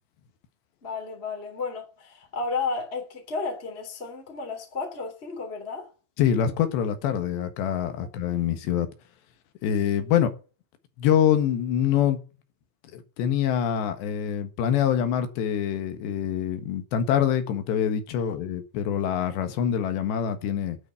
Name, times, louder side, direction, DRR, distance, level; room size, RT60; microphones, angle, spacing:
voice 1, 0.8-5.9, left 4 dB, 15° left, 2.8 m, -32 dB
voice 2, 6.2-8.9 9.6-10.3 11.0-12.2 12.9-20.8, left 9 dB, 75° left, 3.7 m, -25 dB
9.6 x 9.1 x 8.1 m
omnidirectional pair, 5.1 m